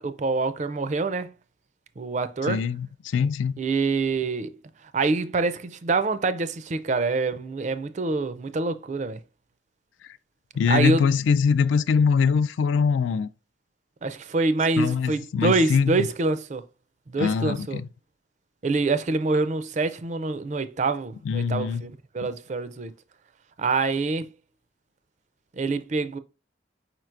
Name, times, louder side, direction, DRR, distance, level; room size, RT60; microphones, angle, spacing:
voice 1, 0.0-1.3 2.0-2.6 3.6-4.5 4.9-9.2 10.7-11.1 14.0-16.6 17.1-17.8 18.6-22.9 23.6-24.3 25.6-26.2, right 3 dB, 40° right, 0.4 m, -26 dB
voice 2, 2.5-3.5 10.6-13.3 14.8-16.1 17.2-17.9 21.3-21.8, left 6 dB, 75° left, 0.3 m, -23 dB
4.8 x 4.5 x 2.4 m
head